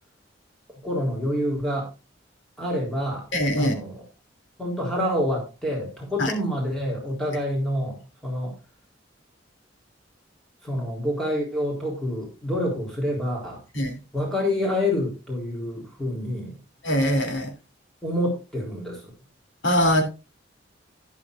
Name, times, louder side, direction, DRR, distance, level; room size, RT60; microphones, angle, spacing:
voice 1, 0.8-1.9 2.6-3.2 3.6-4.0 4.6-8.6 10.6-13.6 14.1-16.6 18.0-19.1, left 1 dB, 5° left, 3.9 m, -27 dB
voice 2, 3.3-3.8 6.2-6.3 13.7-14.0 16.8-17.5 19.6-20.0, equal, 70° left, 3.2 m, -22 dB
12.5 x 10.5 x 2.6 m
head